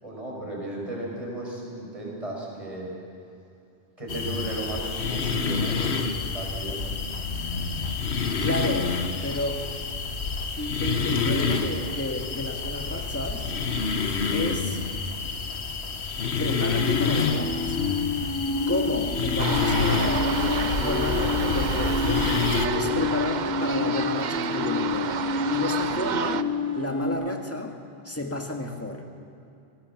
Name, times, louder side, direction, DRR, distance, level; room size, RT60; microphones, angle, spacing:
voice 1, 0.0-2.9 4.0-6.9, right 2 dB, 35° right, -3 dB, 5.3 m, -35 dB
sound 1, 4.1-22.7, left 5 dB, 90° left, 1.4 m, -28 dB
voice 2, 8.4-9.7 10.6-13.5 14.3-14.8 16.4-17.9 18.7-22.3 22.7-26.5 26.7-27.7 28.0-29.0, left 1 dB, 15° left, 3 dB, 1.7 m, -31 dB
sound 2, 16.7-27.1, left 5 dB, 40° left, 7.6 m, -29 dB
sound 3, 19.4-26.4, right 8 dB, 50° right, 0.6 m, -30 dB
21.0 x 18.5 x 7.1 m, 2.6 s
omnidirectional pair, 1.1 m